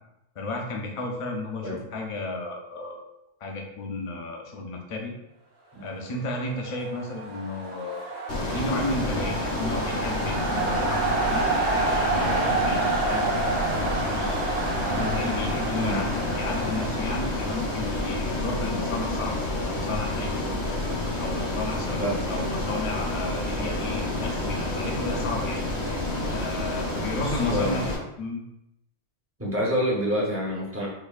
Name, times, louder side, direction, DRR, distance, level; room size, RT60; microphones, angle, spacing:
voice 1, 0.4-3.0 3.4-5.1 5.8-8.1 8.5-11.5 11.7-14.3 14.8-20.6 21.2-25.6 26.3-28.4, left 2 dB, 40° left, 0 dB, 0.5 m, -33 dB
sound 1, 6.5-18.4, right 3 dB, 60° right, 0.9 m, -29 dB
Ocean, 8.3-27.9, left 2 dB, 70° left, 1.1 m, -29 dB
voice 2, 22.0-22.5 27.2-27.9 29.4-30.9, equal, 15° right, -4 dB, 0.6 m, -28 dB
4.5 x 2.6 x 2.4 m, 0.86 s
omnidirectional pair, 1.2 m